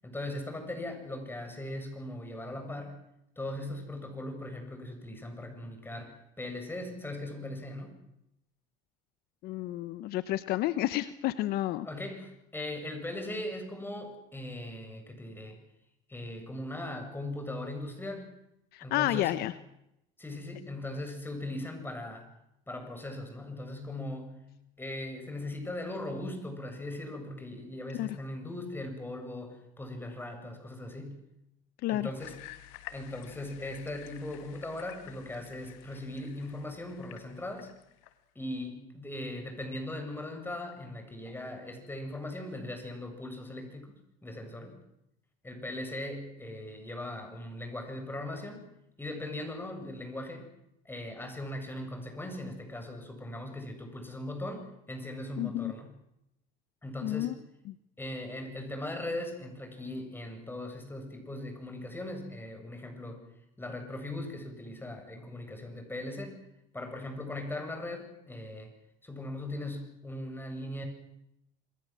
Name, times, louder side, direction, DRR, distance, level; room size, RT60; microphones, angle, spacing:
voice 1, 0.0-3.0 3.4-8.0 11.8-15.6 16.1-18.3 18.8-19.4 20.2-22.3 22.7-24.4 24.8-31.2 31.9-32.4 32.9-37.7 38.3-43.9 44.2-44.8 45.4-48.6 49.0-50.5 50.8-55.9 56.8-57.3 58.0-63.2 63.6-66.4 66.7-68.7 69.0-70.9, left 1 dB, 10° left, 5 dB, 7.8 m, -39 dB
voice 2, 9.4-11.9 18.7-19.5 28.0-28.2 31.8-32.1 55.4-55.7 57.0-57.3 57.7-57.8, left 15 dB, 65° left, 14 dB, 1.1 m, -30 dB
sound 1, 32.2-38.2, left 15 dB, 80° left, 2.1 m, -50 dB
28.0 x 21.0 x 7.7 m, 0.84 s
supercardioid pair, 90°, 17 cm